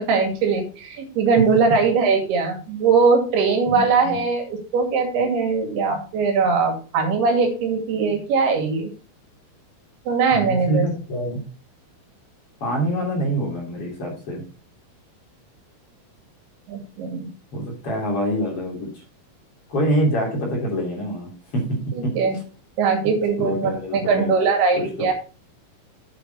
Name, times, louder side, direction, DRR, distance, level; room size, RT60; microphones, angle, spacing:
voice 1, 0.0-8.9 10.1-10.9 16.7-17.3 21.9-22.4 22.8-25.1, right 4 dB, 85° right, 4 dB, 4.3 m, -21 dB
voice 2, 3.7-4.2 10.3-11.4 12.6-14.4 17.5-18.9 19.7-22.2 23.4-24.3 24.7-25.1, right 1 dB, 40° left, 0 dB, 3.5 m, -25 dB
9.0 x 8.1 x 4.0 m, 0.37 s
omnidirectional pair, 4.5 m